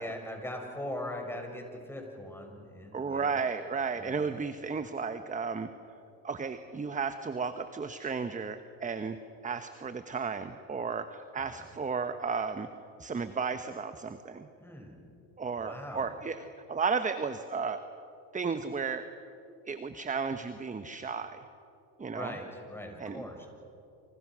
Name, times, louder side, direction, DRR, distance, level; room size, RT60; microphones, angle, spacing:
voice 1, 0.0-3.3 4.0-4.2 11.5-11.6 14.6-15.0 15.6-16.1 22.1-23.5, left 1 dB, 5° left, 2 dB, 6.6 m, -40 dB
voice 2, 2.9-5.7 6.2-9.2 9.4-12.7 13.0-14.5 15.4-17.8 18.3-19.1 19.7-21.4 22.0-22.4 23.0-23.4, right 5 dB, 20° right, 10 dB, 1.2 m, -34 dB
29.0 x 28.0 x 6.3 m, 2.7 s
supercardioid pair, 100°, 43 cm